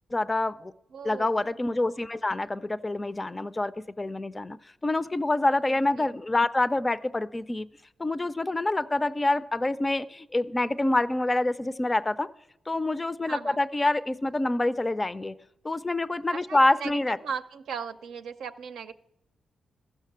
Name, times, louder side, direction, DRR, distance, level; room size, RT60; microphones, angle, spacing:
voice 1, 0.1-0.7 1.0-3.7 4.0-4.6 4.8-7.7 8.0-12.3 12.7-15.3 15.6-17.2, left 2 dB, 20° left, 14 dB, 0.4 m, -26 dB
voice 2, 0.9-1.5 6.0-6.1 13.3-13.6 16.3-18.9, right 6 dB, 90° right, 7 dB, 0.5 m, -38 dB
14.5 x 6.6 x 7.3 m, 0.85 s
cardioid pair, 75°, 0 cm